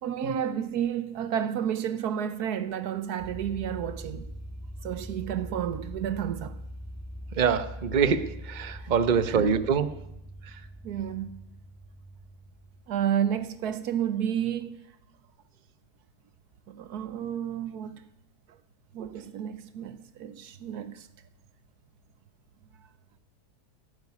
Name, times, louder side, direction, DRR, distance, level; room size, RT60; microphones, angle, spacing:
voice 1, 0.0-4.3 4.8-6.6 8.8-8.9 9.3-9.6 10.8-11.4 12.9-14.8 16.7-18.0 18.9-21.1, right 9 dB, 85° right, 1.4 m, -31 dB
sound 1, 3.2-13.9, equal, 10° right, 1.7 m, -42 dB
voice 2, 7.4-9.9 19.0-19.1, right 6 dB, 35° right, 0.8 m, -25 dB
17.0 x 8.9 x 9.7 m
omnidirectional pair, 1.6 m